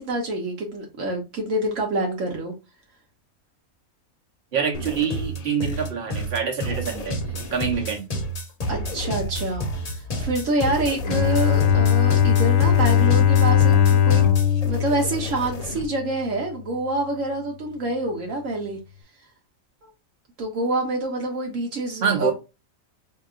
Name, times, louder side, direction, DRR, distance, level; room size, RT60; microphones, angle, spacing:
voice 1, 0.0-2.5 8.7-14.2 14.6-18.8 20.4-22.3, right 2 dB, 70° right, 1.2 m, -27 dB
voice 2, 4.5-7.2 7.5-8.1 22.0-22.3, right 6 dB, 50° right, 1.2 m, -25 dB
sound 1, 4.7-15.8, equal, 40° left, 0.6 m, -30 dB
Bowed string instrument, 11.0-16.0, left 9 dB, 75° left, 0.9 m, -19 dB
4.9 x 2.8 x 2.4 m
omnidirectional pair, 1.4 m